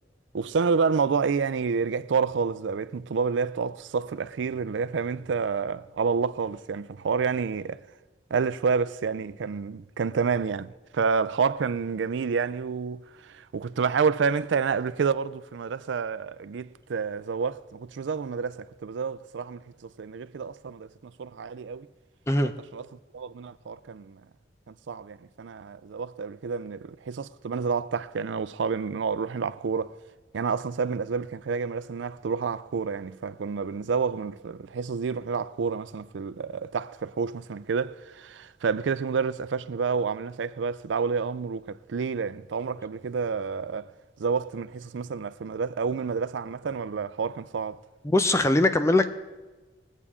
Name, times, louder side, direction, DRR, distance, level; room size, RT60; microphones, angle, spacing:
voice 1, 0.3-7.8 8.3-21.9 22.7-22.9 23.1-24.2 24.7-29.9 30.3-43.9 44.2-47.8, right 5 dB, 80° right, 0.4 m, -29 dB
voice 2, 48.0-49.1, left 2 dB, 15° left, 0.5 m, -21 dB
21.5 x 8.3 x 3.6 m
head